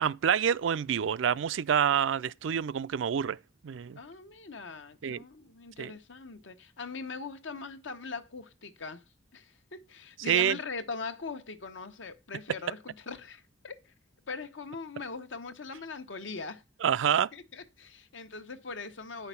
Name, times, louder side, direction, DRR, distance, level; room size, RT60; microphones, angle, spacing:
voice 1, 0.0-3.4 3.6-4.0 5.0-5.2 5.8-5.9 10.3-10.6 16.8-17.3, right 8 dB, 85° right, 0.4 m, -27 dB
voice 2, 4.0-9.0 9.3-13.9 14.3-16.6 17.1-19.3, left 4 dB, 85° left, 1.1 m, -41 dB
9.2 x 5.7 x 5.7 m
head